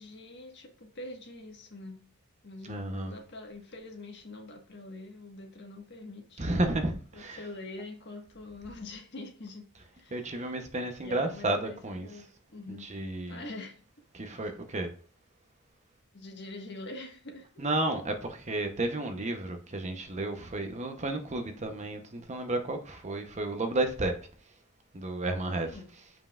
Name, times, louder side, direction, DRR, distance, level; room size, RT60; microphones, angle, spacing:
voice 1, 0.0-2.0 2.4-6.5 7.1-9.6 9.9-10.5 11.0-12.9 13.3-13.8 14.4-14.5 16.1-17.6 25.5-25.9, left 2 dB, 55° left, 1.5 m, -45 dB
voice 2, 2.7-3.1 6.4-7.4 10.1-12.1 12.7-13.4 14.1-14.9 17.6-24.1 24.9-25.7, right 2 dB, 35° right, 0.9 m, -32 dB
7.4 x 5.5 x 2.4 m
head